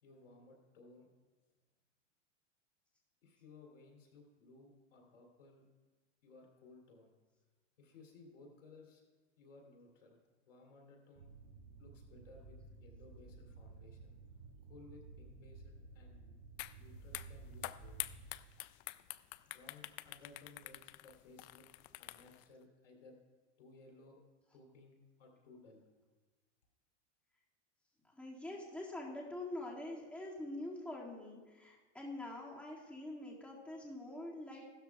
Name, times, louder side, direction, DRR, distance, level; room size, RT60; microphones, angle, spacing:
voice 1, 0.0-1.1 3.2-5.6 6.2-7.1 7.8-9.0 9.4-10.2 10.5-11.3 11.8-14.2 14.7-16.4 16.7-18.0 19.5-21.7 22.0-23.2 23.6-24.2 24.5-25.8, left 3 dB, 90° left, 0 dB, 3.1 m, -59 dB
sound 1, 11.1-18.3, right 3 dB, 80° right, 4.3 m, -54 dB
sound 2, 16.6-16.8 17.1-22.4, left 19 dB, 45° left, 0.4 m, -46 dB
voice 2, 28.0-34.7, left 1 dB, 5° left, -4 dB, 2.2 m, -45 dB
16.0 x 12.5 x 2.4 m, 1.3 s
hypercardioid pair, 120°, 36 cm